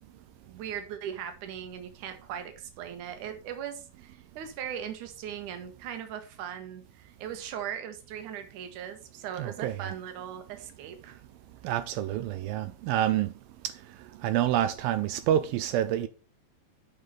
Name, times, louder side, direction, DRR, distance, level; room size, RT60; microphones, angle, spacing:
voice 1, 0.5-11.2, right 9 dB, 60° right, 2.4 m, -39 dB
voice 2, 9.4-9.9 11.6-13.3 14.2-16.1, right 12 dB, 85° right, 2.1 m, -27 dB
8.6 x 5.6 x 5.8 m
omnidirectional pair, 4.8 m